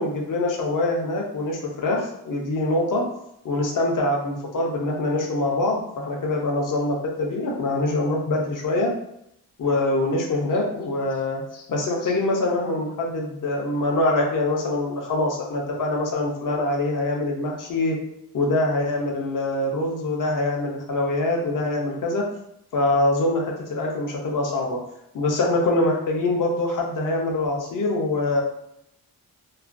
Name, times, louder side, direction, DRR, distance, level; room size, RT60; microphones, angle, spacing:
voice 1, 0.0-3.0 3.4-8.9 9.6-18.0 18.3-22.2 22.7-24.8 25.1-28.4, left 2 dB, 55° left, -1 dB, 0.6 m, -24 dB
2.3 x 2.2 x 2.5 m, 0.78 s
wide cardioid pair, 145°, 39 cm